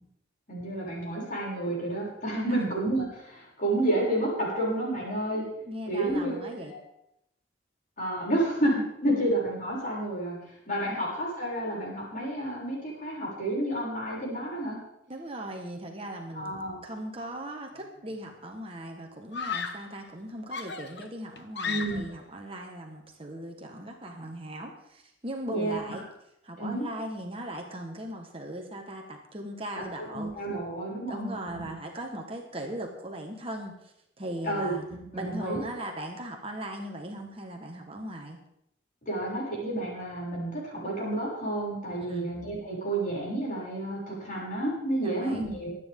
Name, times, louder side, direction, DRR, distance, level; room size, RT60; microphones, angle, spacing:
voice 1, 0.5-5.4 5.9-6.8 8.0-10.4 10.7-14.8 16.3-16.8 21.6-22.0 25.5-25.8 26.6-26.8 30.0-31.7 34.4-35.6 39.1-45.8, right 1 dB, 45° left, -5 dB, 7.1 m, -30 dB
voice 2, 5.6-6.7 15.1-16.5 16.8-26.1 26.4-30.3 31.1-34.8 35.1-38.4 41.9-42.3 45.0-45.5, right 1 dB, 30° right, 2 dB, 1.5 m, -38 dB
Screaming, 17.8-18.2 19.3-20.0 20.5-22.2, left 5 dB, 60° left, 1.1 m, -35 dB
24.0 x 9.5 x 3.8 m, 0.80 s
head